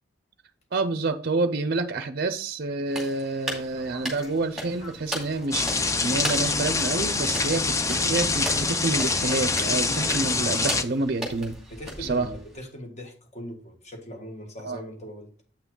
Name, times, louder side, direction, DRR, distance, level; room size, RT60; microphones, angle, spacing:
voice 1, 0.7-11.5 12.0-12.3 14.6-14.8, right 3 dB, 50° right, 0.5 m, -28 dB
sound 1, 2.9-12.6, right 1 dB, 5° right, 2.3 m, -38 dB
sound 2, 3.4-10.7, left 1 dB, 80° left, 2.6 m, -47 dB
sound 3, 5.5-10.8, left 3 dB, 15° left, 0.4 m, -25 dB
voice 2, 11.7-15.3, equal, 35° left, 1.7 m, -40 dB
8.5 x 5.9 x 3.8 m
head